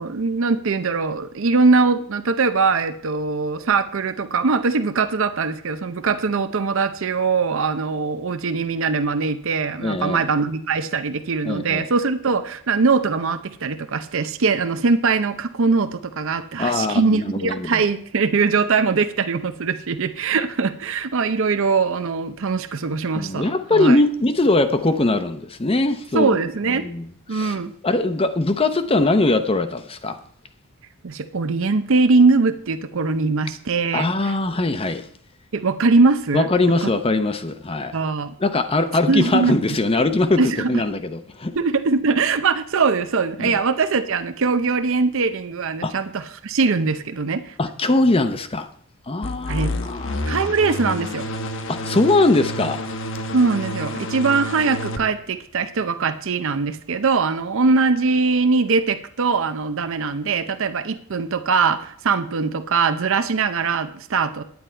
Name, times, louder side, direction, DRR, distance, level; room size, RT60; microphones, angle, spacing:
voice 1, 0.0-24.0 26.1-26.8 27.3-27.7 31.0-34.3 35.5-36.5 36.8-36.9 37.9-38.3 39.1-39.6 40.4-40.7 41.5-47.5 49.5-49.7 50.3-51.3 53.3-64.4, right 4 dB, 60° right, 0.6 m, -21 dB
voice 2, 9.8-10.3 11.4-11.9 16.6-17.8 23.1-26.4 26.7-27.6 27.8-30.2 33.9-35.1 36.3-38.0 38.4-41.6 43.4-43.6 45.8-45.9 47.6-48.7 49.1-50.2 51.7-52.8, left 2 dB, 25° left, 0.7 m, -21 dB
sound 1, 49.2-55.0, left 1 dB, 60° left, 1.0 m, -29 dB
9.8 x 9.6 x 4.5 m
head